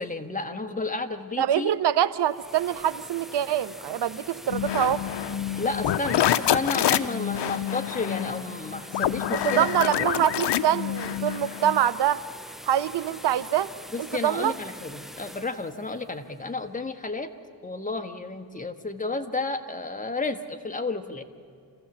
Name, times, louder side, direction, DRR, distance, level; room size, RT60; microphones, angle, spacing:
voice 1, 0.0-1.7 5.6-10.3 13.9-17.3 17.6-21.2, left 3 dB, 15° left, 6 dB, 1.3 m, -32 dB
voice 2, 1.4-5.0 9.3-12.2 12.6-13.7 14.0-14.5, right 10 dB, 65° right, 14 dB, 0.8 m, -25 dB
sound 1, 2.1-16.9, equal, ahead, 0.6 m, -44 dB
sound 2, 4.5-11.8, left 11 dB, 65° left, 0.7 m, -27 dB
27.5 x 15.0 x 7.2 m, 2.1 s
cardioid pair, 95°, 45 cm